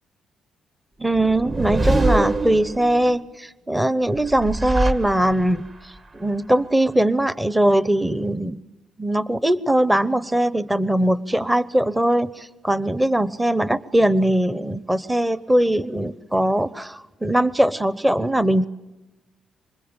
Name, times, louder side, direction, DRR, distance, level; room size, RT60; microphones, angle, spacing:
voice 1, 1.0-8.6 9.0-18.6, right 1 dB, 10° right, 17 dB, 0.9 m, -21 dB
sound 1, 1.1-3.1 4.2-5.7, right 2 dB, 35° right, 2.3 m, -24 dB
26.5 x 25.5 x 8.9 m, 1.0 s
cardioid pair, 90°, 0 cm